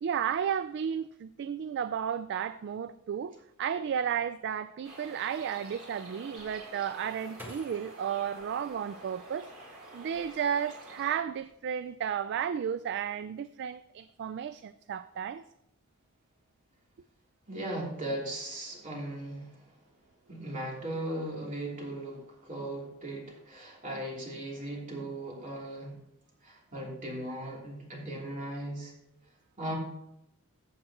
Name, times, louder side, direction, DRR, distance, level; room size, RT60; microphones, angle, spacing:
voice 1, 0.0-3.3 3.6-9.5 9.9-15.4, right 8 dB, 50° right, 0.3 m, -33 dB
sound 1, 4.8-11.1, right 1 dB, 70° right, 3.9 m, -48 dB
sound 2, 6.4-9.5 10.0-10.7 11.1-11.5, equal, 10° right, 1.5 m, -52 dB
voice 2, 17.5-19.5 20.3-25.9 26.4-28.9 29.6-29.7, right 1 dB, 35° right, 3.2 m, -38 dB
15.0 x 7.8 x 3.0 m
head